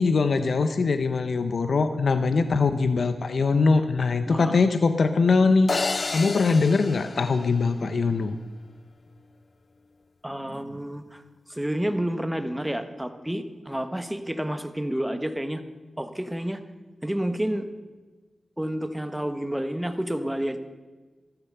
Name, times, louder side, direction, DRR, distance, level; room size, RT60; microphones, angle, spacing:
voice 1, 0.0-8.4, left 4 dB, 70° left, 10 dB, 0.8 m, -22 dB
voice 2, 4.3-4.6 10.2-11.2 11.5-15.6 16.0-16.6 17.0-17.7 18.6-20.7, right 1 dB, 10° right, 9 dB, 1.3 m, -30 dB
sound 1, 5.7-8.0, left 3 dB, 50° left, 0.4 m, -30 dB
14.5 x 12.0 x 6.8 m, 1.3 s
cardioid pair, 70°, 0 cm